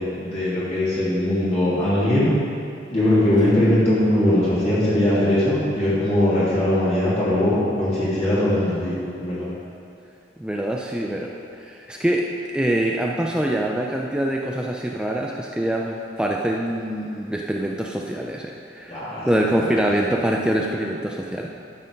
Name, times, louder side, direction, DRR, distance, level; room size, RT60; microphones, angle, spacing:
voice 1, 0.0-2.3 2.9-9.5 18.9-19.3, left 1 dB, 35° left, -10 dB, 2.7 m, -20 dB
voice 2, 10.4-11.3 11.6-12.2 12.5-19.0 19.3-21.5, right 1 dB, 5° right, -1 dB, 0.5 m, -24 dB
12.0 x 6.9 x 5.2 m, 2.5 s
head